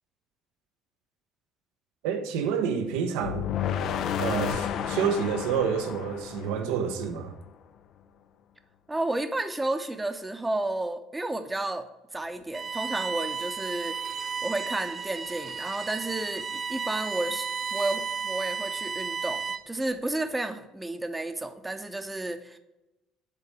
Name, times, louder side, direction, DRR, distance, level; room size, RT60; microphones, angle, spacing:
voice 1, 2.0-3.5 4.2-7.3, right 7 dB, 80° right, 7 dB, 0.9 m, -28 dB
sound 1, 3.2-7.3, left 9 dB, 60° left, 0.5 m, -31 dB
voice 2, 8.9-11.9 12.1-14.0 14.4-22.6, right 2 dB, 15° right, 9 dB, 0.8 m, -32 dB
Bowed string instrument, 12.5-19.8, right 6 dB, 35° right, 0.5 m, -33 dB
6.7 x 4.2 x 6.2 m, 0.98 s
supercardioid pair, 80°, 0 cm